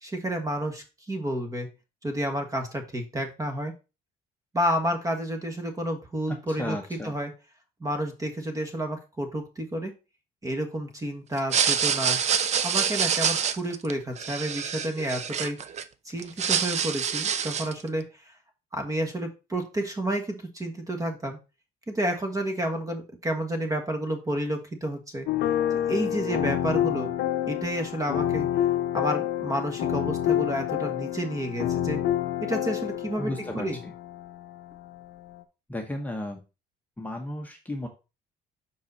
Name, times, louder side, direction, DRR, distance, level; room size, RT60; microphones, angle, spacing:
voice 1, 0.0-1.7 2.0-3.7 4.5-7.3 7.8-9.9 10.4-12.2 12.6-15.6 16.0-18.3 18.7-21.4 21.9-25.3 25.9-27.1 27.5-28.5 28.9-32.0 32.4-33.8, right 1 dB, 20° right, 5 dB, 1.4 m, -30 dB
voice 2, 6.3-7.2 33.2-33.9 35.7-36.4 37.0-37.9, left 1 dB, 10° left, 1 dB, 1.0 m, -34 dB
sound 1, 11.4-15.8 16.2-17.8, right 7 dB, 40° right, 0.6 m, -26 dB
sound 2, 25.3-35.4, left 11 dB, 75° left, 0.8 m, -28 dB
5.7 x 4.7 x 4.0 m, 0.29 s
cardioid pair, 110°, 17 cm